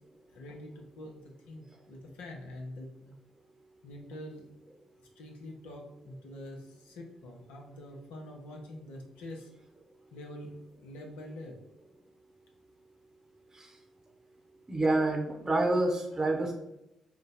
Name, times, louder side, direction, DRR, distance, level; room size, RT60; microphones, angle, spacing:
voice 1, 0.3-3.2 3.8-4.5 5.2-9.5 10.1-10.5 10.8-11.6, left 1 dB, 70° left, 1 dB, 0.8 m, -45 dB
voice 2, 14.7-16.5, right 2 dB, 25° right, 2 dB, 0.8 m, -27 dB
5.0 x 2.2 x 4.0 m, 0.88 s
hypercardioid pair, 40°, 2 cm